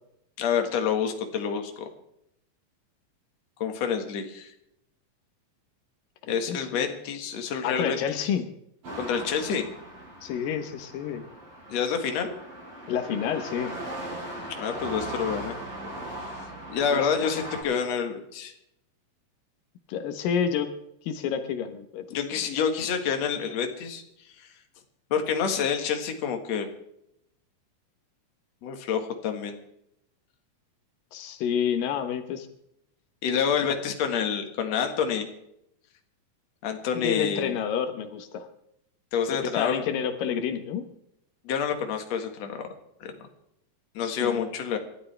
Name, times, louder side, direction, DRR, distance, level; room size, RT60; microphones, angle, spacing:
voice 1, 0.4-1.8 3.6-4.5 6.3-8.0 9.0-9.7 11.7-12.3 14.5-15.5 16.2-16.3 16.7-18.5 22.1-24.0 24.4-24.5 25.1-26.7 28.6-29.6 33.2-35.3 36.6-37.6 39.1-39.8 41.4-42.6 43.0-43.1 43.9-44.8, left 7 dB, 55° left, 4 dB, 2.7 m, -28 dB
voice 2, 6.3-6.9 7.6-8.5 10.2-11.2 12.9-13.7 16.9-17.3 19.9-20.7 21.0-22.2 31.1-32.5 33.6-33.7 36.9-38.5 39.3-40.9 44.0-44.5, left 8 dB, 85° left, 8 dB, 2.8 m, -29 dB
sound 1, 8.8-17.6, right 1 dB, 85° right, 7.8 m, -39 dB
28.0 x 12.5 x 3.4 m, 0.78 s
omnidirectional pair, 3.9 m